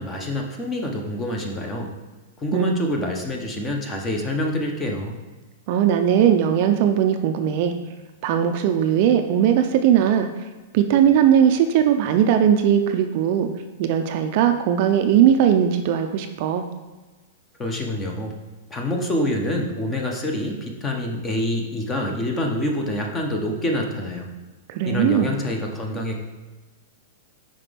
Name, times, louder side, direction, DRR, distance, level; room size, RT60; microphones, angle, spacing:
voice 1, 0.0-1.9 2.4-5.2 17.6-18.3 18.7-24.3 24.9-26.2, left 1 dB, 15° left, 2 dB, 0.7 m, -26 dB
voice 2, 5.7-7.7 8.2-10.3 10.7-13.5 13.8-16.6 24.7-25.3, right 9 dB, 40° right, 7 dB, 0.4 m, -19 dB
5.8 x 5.0 x 3.4 m, 1.2 s
supercardioid pair, 160°, 0 cm